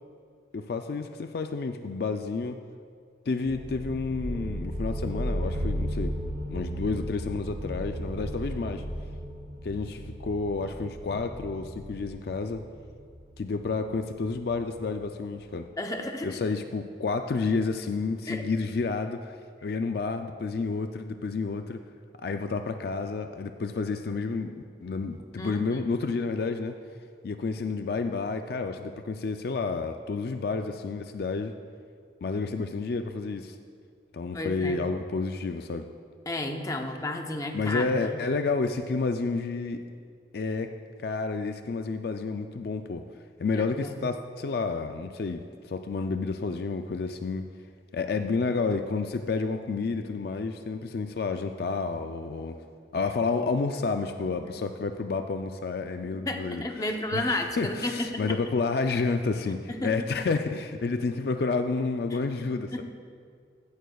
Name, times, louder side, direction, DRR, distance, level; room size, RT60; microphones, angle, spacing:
voice 1, 0.5-2.6 3.3-6.1 6.5-8.8 9.6-12.6 13.4-15.6 16.2-19.3 19.6-21.8 22.2-24.5 24.8-26.8 27.2-31.5 32.2-33.6 34.1-35.9 37.5-39.8 40.3-40.7 41.0-43.0 43.4-47.5 47.9-52.6 52.9-62.8, left 4 dB, 55° left, 6 dB, 0.4 m, -30 dB
sound 1, 3.4-14.9, equal, 50° right, 2.4 m, -35 dB
voice 2, 15.8-16.4 18.3-18.4 25.4-25.8 34.3-34.8 36.3-38.2 43.5-44.0 54.4-54.5 56.3-58.2 59.7-60.1 62.1-62.2 62.7-62.8, left 1 dB, 20° left, 4 dB, 0.7 m, -32 dB
15.5 x 11.0 x 2.3 m, 2.1 s
head